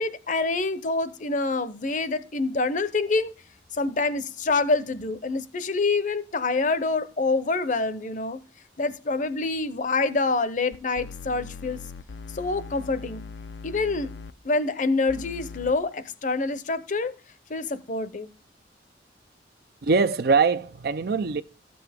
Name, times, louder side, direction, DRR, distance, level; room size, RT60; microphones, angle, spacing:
voice 1, 0.0-3.3 3.7-8.4 8.8-11.8 12.3-13.2 13.6-14.1 14.4-17.1 17.5-18.3, left 3 dB, 45° left, 0.8 m, -26 dB
sound 1, 10.7-14.3 15.1-15.7, left 5 dB, 85° left, 0.7 m, -40 dB
voice 2, 19.8-21.4, right 4 dB, 60° right, 0.5 m, -22 dB
13.5 x 7.8 x 3.5 m
head